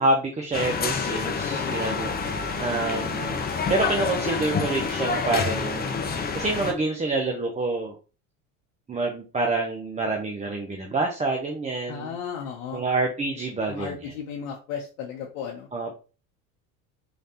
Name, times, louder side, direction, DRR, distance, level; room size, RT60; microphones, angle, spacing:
voice 1, 0.0-2.1 2.6-3.4 3.7-7.9 8.9-12.2 12.7-14.1 15.7-15.9, right 2 dB, 15° right, 2 dB, 0.6 m, -27 dB
sound 1, 0.5-6.7, left 5 dB, 25° left, 0.7 m, -28 dB
voice 2, 1.4-1.8 11.9-12.8 13.7-15.7, left 7 dB, 85° left, 0 dB, 0.8 m, -35 dB
4.1 x 3.2 x 2.8 m, 0.34 s
hypercardioid pair, 85°, 41 cm